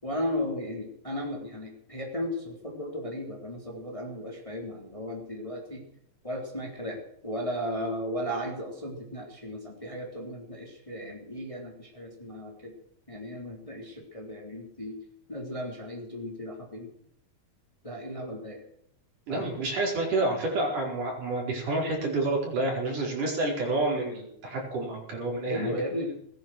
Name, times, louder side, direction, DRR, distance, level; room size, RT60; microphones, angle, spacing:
voice 1, 0.0-5.8 6.2-12.7 13.1-15.0 15.3-16.9 17.8-18.6 19.3-19.6 25.5-26.1, equal, 10° left, 0 dB, 3.5 m, -35 dB
voice 2, 19.3-25.7, right 2 dB, 60° right, -1 dB, 6.3 m, -29 dB
20.0 x 11.0 x 6.4 m, 0.72 s
omnidirectional pair, 4.2 m